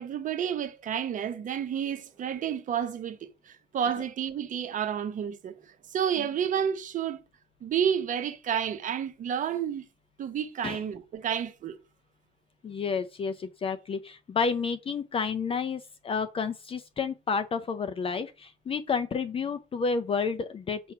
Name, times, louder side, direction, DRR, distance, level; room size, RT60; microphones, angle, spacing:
voice 1, 0.0-5.6 5.9-7.2 7.6-9.9 10.2-11.8, right 8 dB, 50° right, 1.0 m, -30 dB
voice 2, 12.6-20.9, left 5 dB, 35° left, 0.6 m, -30 dB
7.1 x 2.9 x 5.8 m
cardioid pair, 110°, 17 cm